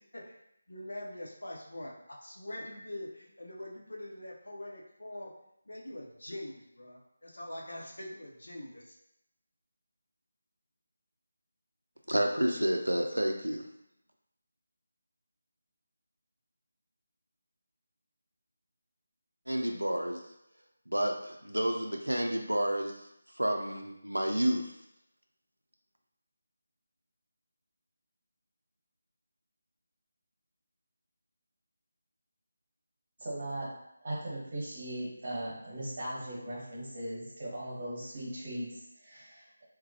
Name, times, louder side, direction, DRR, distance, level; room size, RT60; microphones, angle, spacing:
voice 1, 0.7-5.3 5.7-9.0, left 1 dB, 65° left, -2 dB, 0.7 m, -43 dB
voice 2, 12.1-13.6 19.5-20.2 20.9-22.9 23.4-24.7, right 1 dB, 80° right, 3 dB, 0.4 m, -30 dB
voice 3, 33.2-33.7 34.0-39.6, right 1 dB, 35° right, -5 dB, 1.1 m, -38 dB
4.0 x 2.1 x 2.7 m, 0.81 s
figure-of-eight pair, 160°, 0 cm